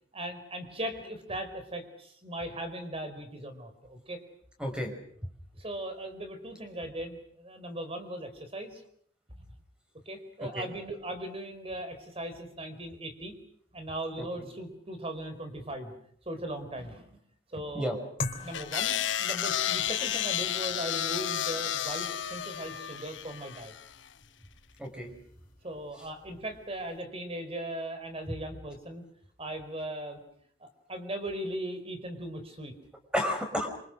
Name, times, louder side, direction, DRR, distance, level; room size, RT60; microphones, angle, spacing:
voice 1, 0.1-4.2 5.6-8.8 10.1-13.3 13.7-15.9 16.3-17.2 17.5-18.0 18.4-18.9 19.2-23.7 25.6-29.0 29.4-30.2 30.6-32.7, right 1 dB, 30° right, 8 dB, 4.5 m, -38 dB
voice 2, 4.6-4.9 10.4-10.7 14.2-14.5 17.7-18.0 24.8-25.1 28.3-28.4 33.1-33.7, equal, 5° right, 4 dB, 5.5 m, -32 dB
sound 1, 18.2-27.0, left 3 dB, 50° left, 3.5 m, -45 dB
sound 2, 18.5-23.9, left 10 dB, 85° left, 1.0 m, -32 dB
27.5 x 26.0 x 6.5 m, 0.65 s
head